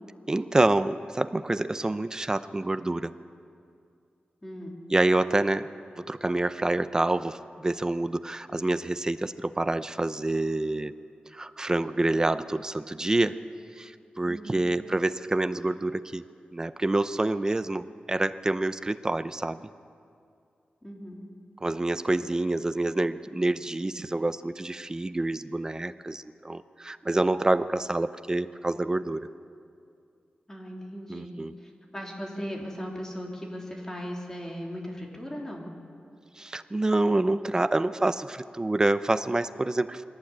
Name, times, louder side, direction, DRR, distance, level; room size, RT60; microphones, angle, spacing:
voice 1, 0.3-3.1 4.9-5.7 6.0-10.9 11.3-13.4 13.8-16.2 16.5-19.6 21.6-29.3 31.1-31.5 36.4-40.0, right 2 dB, 20° right, 12 dB, 0.6 m, -27 dB
voice 2, 4.4-4.8 14.3-14.7 20.8-21.3 30.5-35.7, equal, 15° left, -1 dB, 3.5 m, -38 dB
23.0 x 18.0 x 8.7 m, 2.4 s
wide cardioid pair, 145°, 3 cm